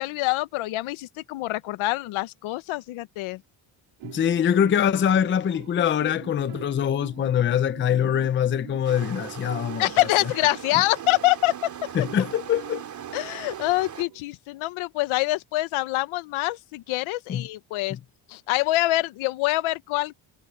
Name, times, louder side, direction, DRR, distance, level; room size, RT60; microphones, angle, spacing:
voice 1, 0.0-3.4 9.8-11.7 13.1-18.0 18.3-20.2, left 18 dB, 80° left, 1.1 m, -25 dB
voice 2, 4.0-9.9 11.9-12.8 17.3-17.5 17.9-18.0, left 9 dB, 25° left, 0.5 m, -23 dB
sound 1, 4.0-14.2, right 17 dB, 90° right, 4.5 m, -43 dB
sound 2, 8.8-14.0, right 8 dB, 35° right, 3.6 m, -40 dB
cardioid pair, 155°, 47 cm